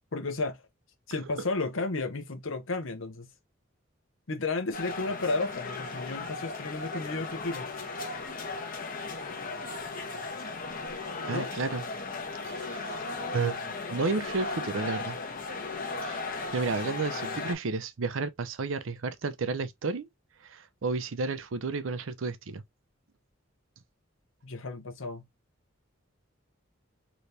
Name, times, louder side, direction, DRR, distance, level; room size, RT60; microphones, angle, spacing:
voice 1, 0.1-0.6 1.1-3.3 4.3-7.7 11.3-11.5 24.4-25.2, left 3 dB, 75° left, 0.8 m, -33 dB
sound 1, 4.7-17.5, left 3 dB, 45° left, 0.9 m, -36 dB
voice 2, 11.3-11.8 12.4-13.0 13.3-15.2 16.0-20.1 20.4-22.6, right 4 dB, 75° right, 0.6 m, -32 dB
3.3 x 3.0 x 2.7 m
head